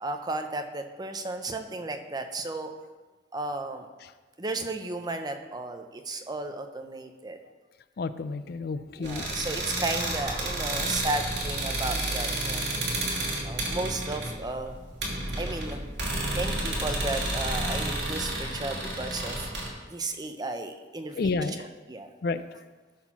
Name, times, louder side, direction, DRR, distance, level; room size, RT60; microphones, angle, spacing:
voice 1, 0.0-2.7 3.3-3.9 4.4-7.4 9.0-12.6 13.4-14.8 15.4-15.8 16.3-19.5 19.9-22.1, right 2 dB, 25° right, 6 dB, 0.7 m, -34 dB
voice 2, 8.0-9.3 13.1-13.2 21.2-21.7 22.2-22.6, left 3 dB, 60° left, 13 dB, 0.4 m, -31 dB
sound 1, 9.0-19.7, right 1 dB, 70° right, 2.5 m, -31 dB
13.0 x 4.5 x 5.9 m, 1.3 s
head